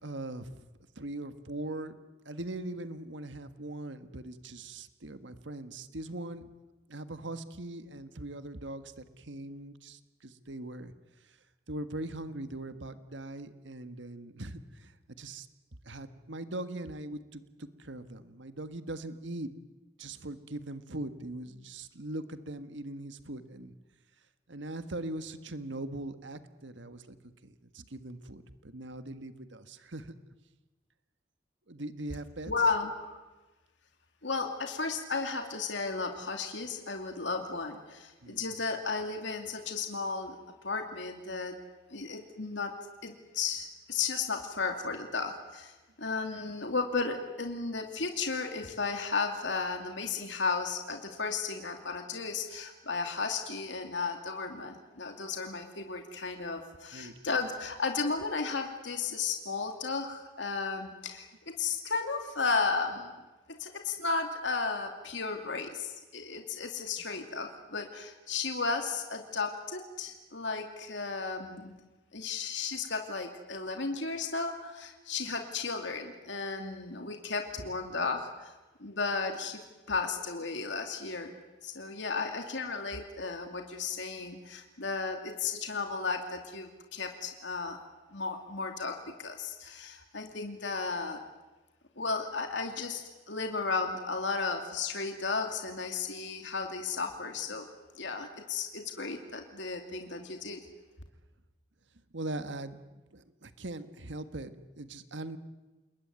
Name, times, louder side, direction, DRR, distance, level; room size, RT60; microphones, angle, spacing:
voice 1, 0.0-0.6 0.9-2.0 2.2-6.5 6.9-10.9 11.7-15.5 15.8-19.5 20.0-23.7 24.5-27.2 27.4-30.2 31.7-32.5 38.2-38.5 56.9-57.2 102.1-102.8 103.1-105.4, right 2 dB, 70° right, 10 dB, 1.5 m, -41 dB
voice 2, 32.5-33.2 34.2-41.6 41.9-42.7 43.0-45.7 46.0-63.1 63.5-71.7 72.1-78.5 78.8-81.3 81.6-87.8 88.1-91.2 92.0-97.7 97.9-100.6, left 4 dB, 70° left, 4 dB, 2.6 m, -34 dB
29.5 x 21.0 x 9.5 m, 1.2 s
head